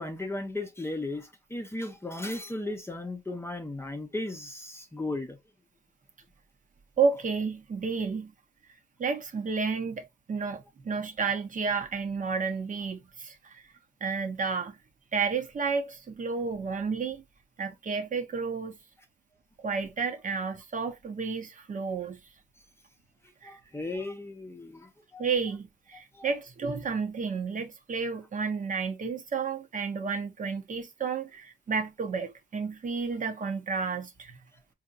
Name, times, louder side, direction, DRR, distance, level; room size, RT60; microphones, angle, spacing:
voice 1, 0.0-5.4 23.4-25.3 26.1-26.3, left 2 dB, 10° left, 0.8 m, -36 dB
voice 2, 7.0-8.3 9.0-13.6 14.0-14.8 15.1-17.2 17.6-18.8 19.6-22.2 23.4-23.6 25.2-34.4, right 5 dB, 40° right, 1.0 m, -31 dB
4.3 x 2.8 x 2.5 m
cardioid pair, 90°, 20 cm